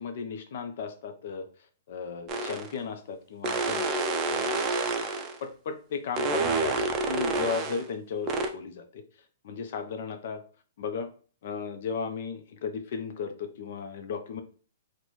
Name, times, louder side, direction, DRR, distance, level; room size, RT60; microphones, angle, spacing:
voice 1, 0.0-1.4 1.9-3.9 4.3-4.6 5.4-6.7 7.1-9.0 9.4-10.4 10.8-11.1 11.4-14.4, left 5 dB, 55° left, 7 dB, 0.5 m, -35 dB
sound 1, 2.3-2.7 3.4-5.4 6.2-7.8 8.3-8.5, right 3 dB, 25° right, 0.4 m, -28 dB
3.8 x 2.2 x 3.0 m, 0.41 s
hypercardioid pair, 160°, 0 cm